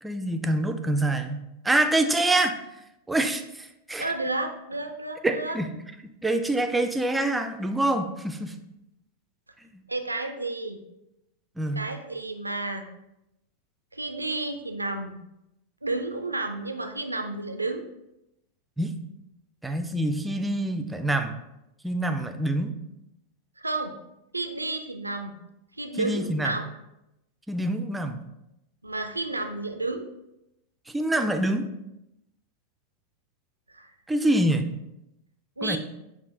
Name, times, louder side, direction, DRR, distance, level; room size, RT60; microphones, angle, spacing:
voice 1, 0.0-2.5 3.1-4.1 5.2-5.7 6.2-8.6 9.7-9.8 11.6-11.8 18.8-19.0 19.6-21.4 21.8-22.8 26.0-26.5 27.5-28.2 30.9-31.7 34.1-34.7 35.6-35.8, right 1 dB, 5° right, 7 dB, 0.4 m, -26 dB
voice 2, 4.0-5.6 9.9-10.8 11.7-12.8 13.9-15.2 15.8-17.9 23.6-24.0 24.3-25.4 25.8-26.6 28.8-30.1 33.7-33.9 35.6-35.8, right 2 dB, 85° right, 6 dB, 0.3 m, -31 dB
6.9 x 2.4 x 2.7 m, 0.89 s
figure-of-eight pair, 90°, 0 cm